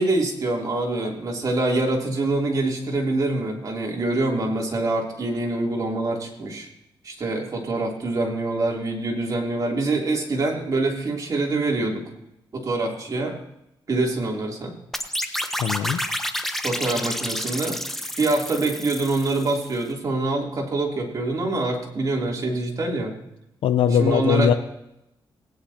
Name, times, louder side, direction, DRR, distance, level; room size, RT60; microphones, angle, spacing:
voice 1, 0.0-6.7 7.0-12.1 12.5-13.4 13.9-14.7 16.6-17.8 18.2-23.2 24.0-24.5, right 2 dB, 40° right, -1 dB, 3.1 m, -25 dB
sound 1, 14.9-19.7, equal, 5° left, 1.0 m, -30 dB
voice 2, 15.6-16.0 23.6-24.5, left 8 dB, 85° left, 9 dB, 0.7 m, -20 dB
18.5 x 9.9 x 2.9 m, 0.84 s
cardioid pair, 100°, 9 cm